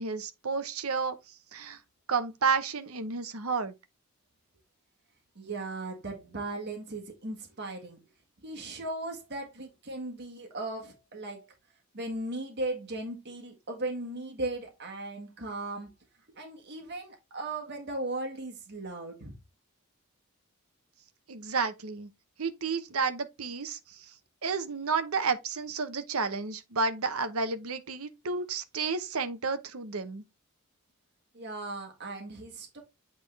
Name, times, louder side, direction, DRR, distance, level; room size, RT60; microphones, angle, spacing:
voice 1, 0.0-1.8 2.1-3.7 21.3-22.1 22.4-24.1 24.4-30.2, right 5 dB, 75° right, 0.9 m, -31 dB
voice 2, 5.3-8.0 8.4-11.5 11.9-15.9 16.3-19.3 31.3-32.8, right 2 dB, 50° right, 1.7 m, -37 dB
8.5 x 3.7 x 3.4 m
head